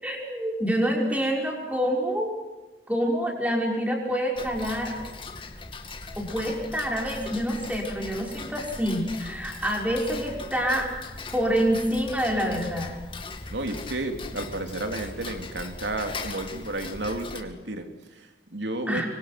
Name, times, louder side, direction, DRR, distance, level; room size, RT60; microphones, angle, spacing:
voice 1, 0.0-2.3 2.9-5.0 6.2-10.9 11.3-12.9 18.9-19.1, equal, 10° right, 0 dB, 5.8 m, -27 dB
Tick-tock, 4.3-17.4, left 3 dB, 30° left, 2.3 m, -39 dB
voice 2, 13.5-19.1, right 2 dB, 85° right, 5 dB, 3.4 m, -32 dB
25.5 x 24.5 x 6.1 m, 1.2 s
head